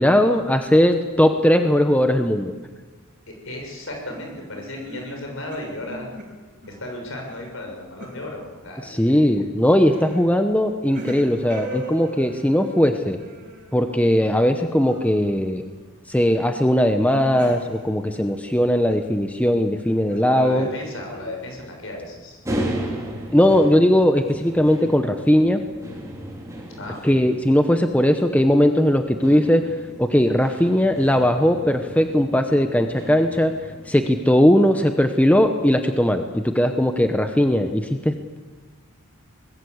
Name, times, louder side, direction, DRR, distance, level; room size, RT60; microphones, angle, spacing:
voice 1, 0.0-2.5 8.8-13.2 13.7-15.6 16.1-20.7 23.3-25.6 27.0-29.7 30.0-33.5 33.9-38.4, equal, 5° left, 6 dB, 0.9 m, -19 dB
voice 2, 3.4-6.1 6.7-9.4 20.2-22.4 26.8-27.2, left 1 dB, 60° left, 1 dB, 6.6 m, -35 dB
sound 1, 3.9-6.9 7.2-8.4 8.8-9.2 9.8-10.2 10.6-15.7 16.1-16.5 16.9-19.1 19.8-21.3, right 1 dB, 40° right, 6.0 m, -40 dB
sound 2, 22.4-34.0, right 1 dB, 15° right, 4.2 m, -35 dB
24.5 x 20.0 x 8.1 m, 1.4 s
head